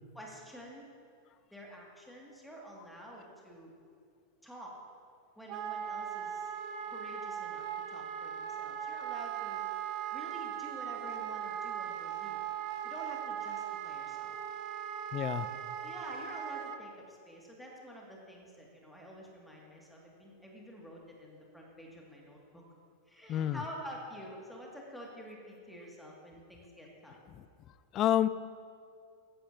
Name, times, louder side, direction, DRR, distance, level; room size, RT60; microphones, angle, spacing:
voice 1, 0.1-0.9 1.5-3.7 4.4-4.7 5.4-6.5 6.9-9.6 10.1-12.4 12.8-14.4 15.8-22.6 23.1-27.2, equal, ahead, -2 dB, 2.2 m, -48 dB
Wind instrument woodwind instrument, 5.5-16.8, right 9 dB, 40° right, 0.7 m, -39 dB
voice 2, 15.1-15.5 23.3-23.6 27.9-28.3, left 11 dB, 35° left, 15 dB, 0.4 m, -28 dB
14.5 x 11.0 x 2.8 m, 2.3 s
figure-of-eight pair, 90°, 0 cm